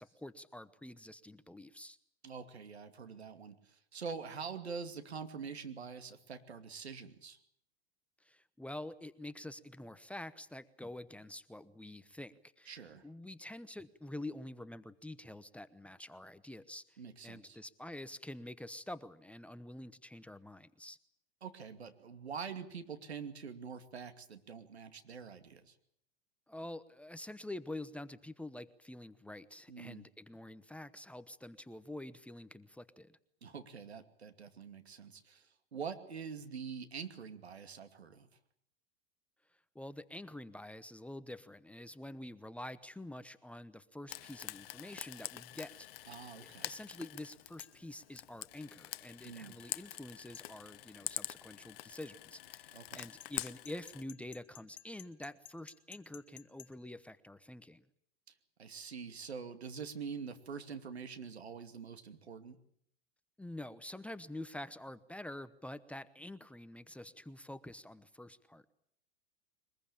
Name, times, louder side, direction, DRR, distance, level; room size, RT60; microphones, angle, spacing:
voice 1, 0.0-2.0 8.2-12.8 13.0-17.0 17.2-21.0 26.5-33.2 39.7-57.8 63.4-68.6, left 1 dB, 5° left, 14 dB, 0.9 m, -47 dB
voice 2, 2.2-7.4 12.7-13.0 17.0-17.6 21.4-25.7 29.7-30.1 33.4-38.3 46.1-46.7 49.2-49.6 52.7-53.0 58.6-62.6, right 6 dB, 90° right, 8 dB, 2.6 m, -45 dB
Frying (food), 44.1-54.0, left 15 dB, 65° left, 0.9 m, -46 dB
sound 1, 47.6-47.8 50.3-50.5 53.0-56.7, left 9 dB, 85° left, 1.4 m, -53 dB
23.0 x 21.0 x 8.7 m, 0.69 s
hypercardioid pair, 105°, 31 cm